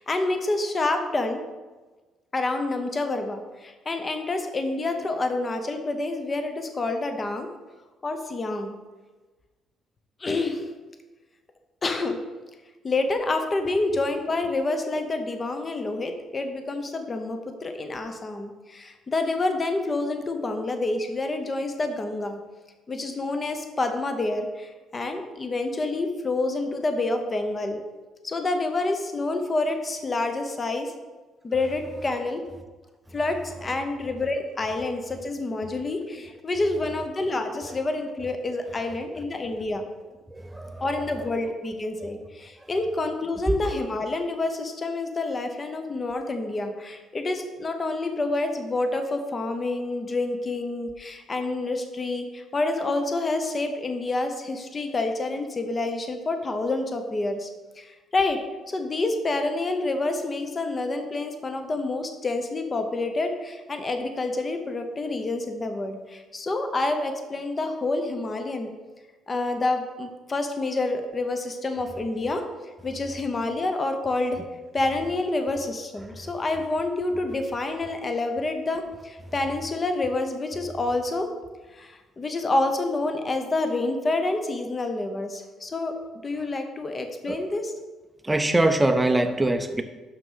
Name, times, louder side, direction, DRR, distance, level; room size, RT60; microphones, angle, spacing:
voice 1, 0.0-1.4 2.3-7.5 8.0-8.8 10.2-10.7 11.8-12.2 12.8-22.4 22.9-27.8 28.2-30.9 31.4-32.4 33.1-39.9 40.8-57.5 57.8-58.4 58.7-68.7 69.3-72.5 72.8-74.4 74.7-81.3 81.7-86.0 86.2-87.7, left 2 dB, 25° left, 6 dB, 0.9 m, -28 dB
voice 2, 40.3-40.8 43.5-43.6 87.3-87.4 88.2-89.8, right 2 dB, 10° right, 7 dB, 0.7 m, -23 dB
6.4 x 6.3 x 5.6 m, 1.2 s
cardioid pair, 130°, 0 cm